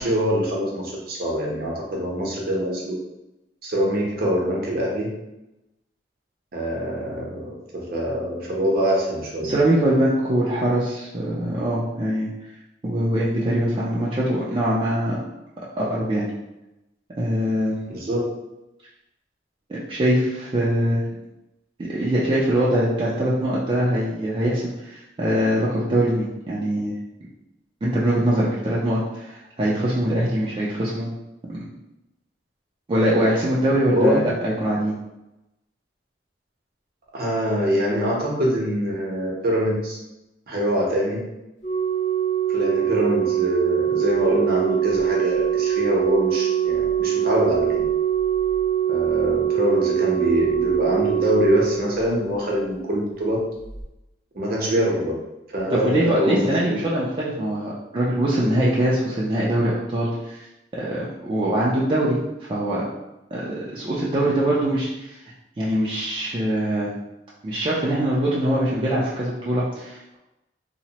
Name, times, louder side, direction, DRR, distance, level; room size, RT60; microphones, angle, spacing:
voice 1, 0.0-2.9 3.6-5.1 6.5-9.5 17.9-18.3 33.9-34.2 37.1-40.0 40.5-41.3 42.5-47.9 48.9-53.4 54.3-55.2 55.5-56.9, equal, 55° right, -3 dB, 0.7 m, -24 dB
voice 2, 9.4-12.3 12.8-15.2 15.8-16.3 17.2-17.9 19.7-21.0 21.8-26.9 27.8-31.1 31.5-31.6 32.9-35.0 55.7-60.5 60.7-62.8 63.3-65.2 65.6-66.9 67.4-70.2, right 1 dB, 30° right, -7 dB, 0.4 m, -23 dB
Organ, 41.6-52.5 53.6-53.8, right 10 dB, 45° left, 0.6 m, -23 dB
2.8 x 2.0 x 2.8 m, 0.95 s
head